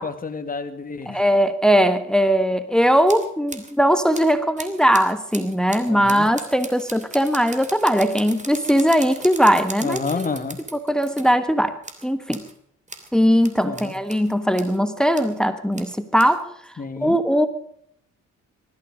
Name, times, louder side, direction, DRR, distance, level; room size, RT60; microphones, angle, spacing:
voice 1, 0.0-1.2 5.9-6.3 9.8-10.6 13.6-13.9 16.8-17.2, left 4 dB, 30° left, 7 dB, 2.2 m, -29 dB
voice 2, 1.1-10.3 10.9-11.8 12.0-12.4 13.1-16.5 17.0-17.5, equal, ahead, 11 dB, 1.3 m, -19 dB
sound 1, 3.1-3.7 4.1-11.3 11.8-12.5 12.9-13.1 13.4-14.8 15.1-15.4 15.7-16.4, right 3 dB, 25° right, 3.1 m, -38 dB
20.0 x 14.0 x 5.1 m, 0.67 s
cardioid pair, 90°, 30 cm